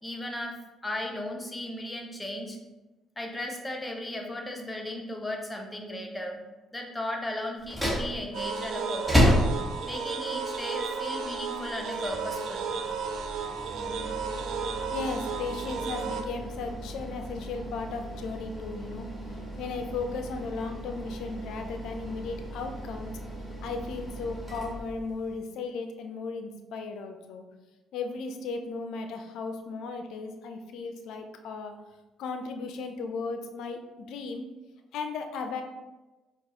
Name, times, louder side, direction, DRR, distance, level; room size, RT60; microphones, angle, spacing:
voice 1, 0.0-2.6 3.2-6.4 6.7-9.4 9.8-12.7, left 1 dB, 15° left, 2 dB, 0.7 m, -36 dB
sound 1, 7.6-25.4, equal, 5° right, 1.2 m, -33 dB
sound 2, 8.3-16.2, right 5 dB, 65° right, 0.4 m, -33 dB
voice 2, 14.9-19.1 19.6-23.1 23.6-27.4 27.9-31.8 32.2-34.5 34.9-35.6, left 4 dB, 70° left, 5 dB, 0.4 m, -36 dB
4.5 x 2.3 x 2.8 m, 1.1 s
hypercardioid pair, 55°, 0 cm